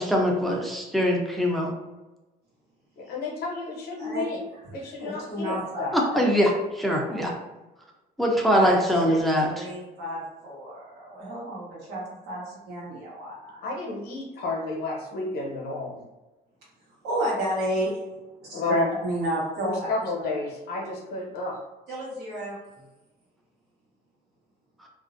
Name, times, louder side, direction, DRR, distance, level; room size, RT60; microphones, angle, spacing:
voice 1, 0.0-1.7 5.9-7.3 8.2-9.7, equal, ahead, -1 dB, 0.4 m, -23 dB
voice 2, 3.0-4.4 4.7-5.9 13.6-16.0 18.5-18.9 19.6-21.6, left 2 dB, 70° left, -1 dB, 0.7 m, -31 dB
voice 3, 5.0-6.3 7.0-7.3 8.5-8.8 9.0-9.2 9.5-10.8 11.1-13.6 17.0-18.0 18.4-20.4 21.9-22.6, right 1 dB, 80° right, -5 dB, 1.1 m, -31 dB
2.4 x 2.1 x 2.5 m, 1.1 s
cardioid pair, 110°, 17 cm